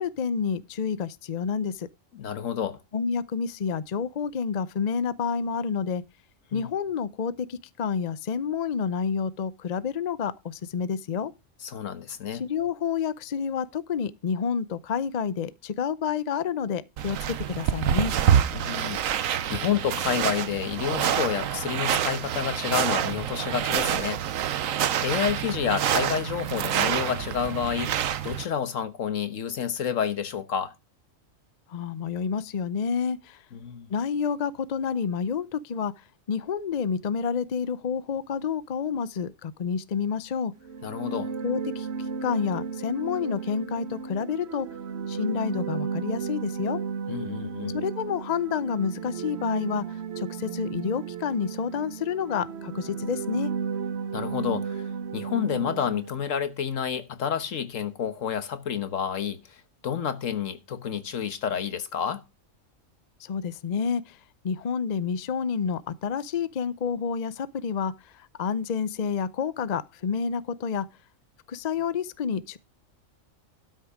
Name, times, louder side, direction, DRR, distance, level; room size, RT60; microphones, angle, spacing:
voice 1, 0.0-1.9 2.9-6.0 6.5-11.3 12.4-17.2 17.5-18.1 31.7-33.4 33.9-35.9 36.3-40.5 41.4-41.9 42.2-44.7 45.1-46.8 47.7-53.5 63.2-64.2 64.4-70.9 71.5-72.6, left 6 dB, 45° left, 0.6 m, -29 dB
voice 2, 2.1-2.8 6.5-6.7 11.6-12.4 18.5-24.2 25.0-27.9 28.2-30.7 33.5-33.9 40.8-41.3 47.1-47.8 54.1-62.2, left 8 dB, 75° left, 1.5 m, -29 dB
sound 1, 17.0-28.5, right 10 dB, 85° right, 1.2 m, -27 dB
sound 2, 40.6-56.3, right 6 dB, 60° right, 1.0 m, -34 dB
12.5 x 6.5 x 4.9 m
omnidirectional pair, 1.4 m